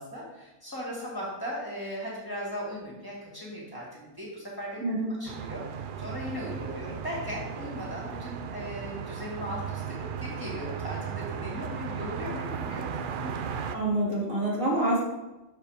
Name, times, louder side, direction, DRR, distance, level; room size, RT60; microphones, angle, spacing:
voice 1, 0.0-4.8 5.2-5.6 6.0-13.3, equal, 15° left, -5 dB, 2.2 m, -38 dB
voice 2, 4.8-5.1 13.7-15.0, right 1 dB, 80° right, -4 dB, 2.6 m, -26 dB
sound 1, 5.3-13.8, right 7 dB, 65° right, 0.5 m, -36 dB
6.5 x 5.4 x 4.9 m, 1.0 s
omnidirectional pair, 1.4 m